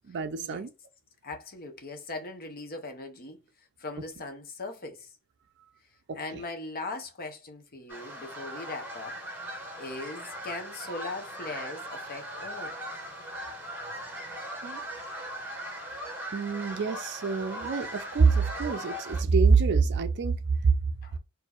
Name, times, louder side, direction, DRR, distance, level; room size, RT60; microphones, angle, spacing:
voice 1, 0.1-0.7 6.1-6.4 14.6-14.8 16.3-20.7, right 5 dB, 50° right, 0.4 m, -25 dB
voice 2, 1.2-3.4 3.8-5.1 6.1-9.2 9.8-12.7 21.0-21.2, left 2 dB, 45° left, 0.8 m, -39 dB
sound 1, 7.9-19.2, right 1 dB, 10° right, 1.2 m, -39 dB
4.4 x 2.7 x 2.4 m
head